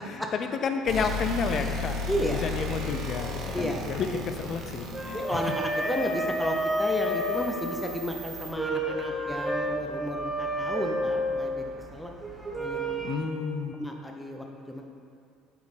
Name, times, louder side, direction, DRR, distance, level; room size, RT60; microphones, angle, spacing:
voice 1, 0.1-2.0 2.3-5.5 13.0-13.7, left 5 dB, 50° left, 6 dB, 0.5 m, -31 dB
sound 1, 0.9-8.5, left 2 dB, 60° right, 0.8 m, -36 dB
voice 2, 2.1-2.6 3.5-3.9 5.1-12.1 12.5-13.1 13.7-14.8, left 1 dB, 5° left, 1 dB, 0.6 m, -33 dB
sound 2, 4.8-13.1, equal, 15° right, 1.5 m, -31 dB
5.6 x 4.3 x 4.1 m, 2.3 s
hypercardioid pair, 70°, 0 cm